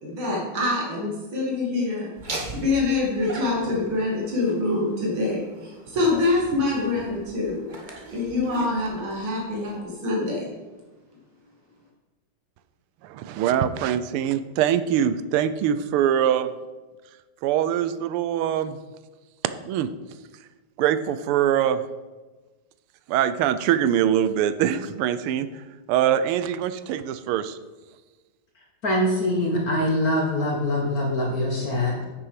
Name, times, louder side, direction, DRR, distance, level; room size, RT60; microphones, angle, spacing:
voice 1, 0.0-2.1 2.5-7.7 8.1-10.4, left 2 dB, 70° right, -3 dB, 3.0 m, -25 dB
Laughter, 2.2-9.8, right 2 dB, 30° right, 1.0 m, -40 dB
voice 2, 13.0-16.5 17.4-18.8 19.7-19.9 20.8-21.8 23.1-25.5 25.9-27.6, right 10 dB, 90° right, 12 dB, 1.5 m, -23 dB
voice 3, 28.8-32.1, left 1 dB, 45° left, -1 dB, 1.7 m, -23 dB
8.8 x 6.6 x 5.8 m, 1.2 s
omnidirectional pair, 2.3 m